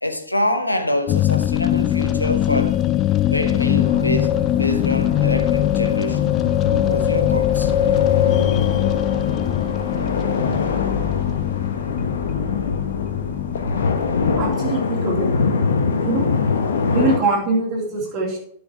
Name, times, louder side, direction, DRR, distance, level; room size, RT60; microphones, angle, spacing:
voice 1, 0.0-2.8 3.3-6.2 6.7-7.7, left 1 dB, 85° left, 1.1 m, -25 dB
sound 1, 1.1-14.6, left 12 dB, 30° left, 0.4 m, -21 dB
sound 2, 3.6-17.2, left 4 dB, 60° left, 1.2 m, -24 dB
voice 2, 14.4-15.3 15.9-16.3 16.9-18.4, right 3 dB, 25° right, 3.2 m, -22 dB
10.5 x 5.7 x 4.8 m
figure-of-eight pair, 100°, 0 cm